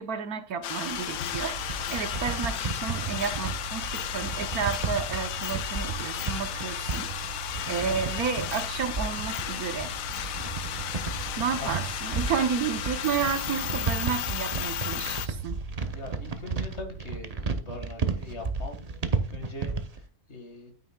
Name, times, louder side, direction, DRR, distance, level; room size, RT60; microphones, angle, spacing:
voice 1, 0.0-7.1 7.7-9.9 11.4-15.6, right 7 dB, 65° right, 1.4 m, -31 dB
sound 1, 0.6-15.3, left 10 dB, 65° left, 1.0 m, -34 dB
Mechanical fan, 0.6-17.5, right 6 dB, 85° right, 2.6 m, -42 dB
sound 2, 1.1-20.0, right 4 dB, 35° right, 0.6 m, -33 dB
voice 2, 11.4-11.7 15.9-20.0 20.3-20.7, left 2 dB, 45° left, 2.0 m, -42 dB
9.1 x 9.1 x 2.3 m
omnidirectional pair, 1.7 m